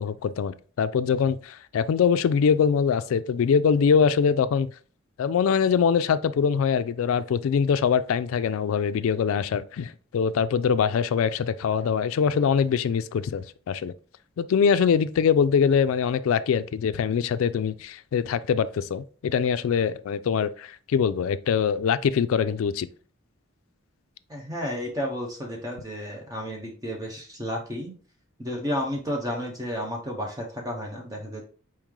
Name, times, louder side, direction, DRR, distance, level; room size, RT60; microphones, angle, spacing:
voice 1, 0.0-4.7 5.2-13.9 14.4-22.9, left 6 dB, 75° left, 0.3 m, -23 dB
voice 2, 24.3-28.0 28.4-31.4, equal, 15° right, 0.6 m, -32 dB
4.4 x 3.1 x 3.6 m
head